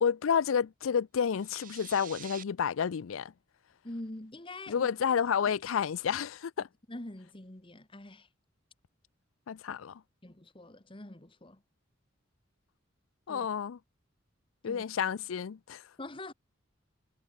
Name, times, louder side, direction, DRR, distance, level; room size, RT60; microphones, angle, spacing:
voice 1, 0.0-3.3 4.7-6.7 9.5-10.0 13.3-13.8 14.6-15.8, left 7 dB, 85° left, 0.4 m, -30 dB
sound 1, 1.3-2.4, right 10 dB, 45° right, 2.6 m, -47 dB
voice 2, 3.8-4.9 6.9-8.3 10.2-11.6 13.3-13.5 14.6-14.8 16.0-16.3, left 1 dB, 25° left, 1.5 m, -44 dB
head